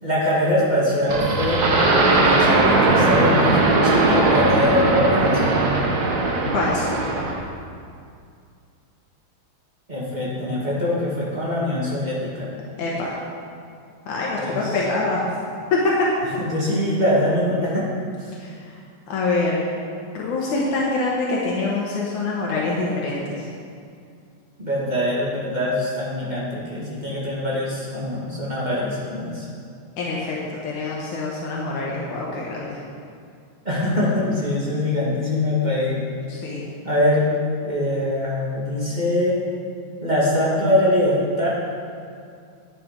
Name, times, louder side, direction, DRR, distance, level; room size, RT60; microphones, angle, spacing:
voice 1, 0.0-5.6 9.9-12.5 14.3-14.8 16.4-17.9 18.2-18.3 24.6-29.5 33.6-36.1 36.8-37.3 37.6-39.4 40.0-41.5, left 1 dB, 20° right, -7 dB, 1.5 m, -23 dB
sound 1, 1.1-7.4, right 2 dB, 75° right, 0.9 m, -19 dB
voice 2, 6.5-6.9 12.8-13.1 14.1-15.2 18.4-18.7 19.1-19.7 20.1-23.4 30.0-32.8 36.3-36.6, left 3 dB, 75° left, -4 dB, 2.6 m, -25 dB
10.0 x 8.6 x 5.1 m, 2.3 s
omnidirectional pair, 3.4 m